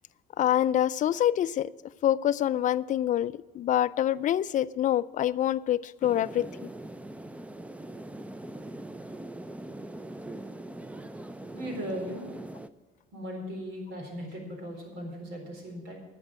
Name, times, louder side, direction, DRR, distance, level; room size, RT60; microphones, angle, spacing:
voice 1, 0.4-1.7 2.0-6.5, left 11 dB, 50° left, 16 dB, 0.4 m, -26 dB
sound 1, 6.0-12.7, right 1 dB, 10° right, 0.5 m, -42 dB
voice 2, 11.5-12.3 13.1-16.0, equal, 85° right, 2 dB, 4.1 m, -37 dB
12.0 x 7.2 x 7.6 m, 1.3 s
cardioid pair, 110°, 17 cm